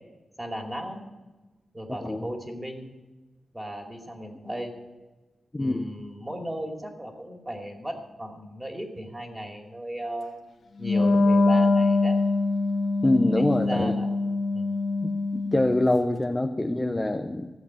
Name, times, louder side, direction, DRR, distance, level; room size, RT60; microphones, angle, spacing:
voice 1, 0.4-1.0 1.7-2.9 3.5-4.7 5.6-10.4 10.8-12.2 13.3-14.1 14.5-14.7, equal, 15° right, 2 dB, 2.7 m, -36 dB
voice 2, 1.9-2.3 5.5-5.8 13.0-13.9 15.0-17.5, left 1 dB, 15° left, 3 dB, 0.8 m, -25 dB
Wind instrument woodwind instrument, 10.8-15.9, left 3 dB, 80° left, 1.6 m, -23 dB
15.0 x 8.0 x 8.8 m, 1.2 s
wide cardioid pair, 95°, 0 cm